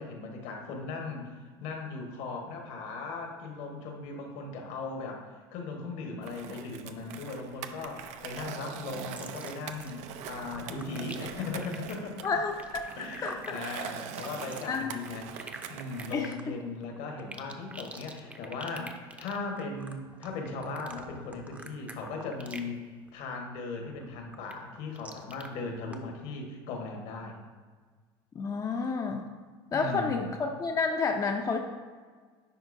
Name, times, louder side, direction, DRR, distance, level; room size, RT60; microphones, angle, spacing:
voice 1, 0.0-1.3 1.6-5.3 5.5-12.3 13.0-15.3 15.7-22.8 23.1-27.4 29.7-30.3, left 3 dB, 65° left, 2 dB, 1.4 m, -38 dB
Skateboard, 6.2-16.2, right 9 dB, 60° right, 0.6 m, -43 dB
sound 1, 8.9-9.9 10.2-22.8 23.1-23.4 23.8-25.5 25.9-26.0, right 2 dB, 10° right, 0.7 m, -46 dB
voice 2, 12.2-12.5 13.2-13.6 14.7-15.0 16.1-16.4 28.4-29.2 29.7-31.6, left 4 dB, 25° left, 3 dB, 0.6 m, -30 dB
10.0 x 4.4 x 2.6 m, 1.5 s
hypercardioid pair, 90°, 13 cm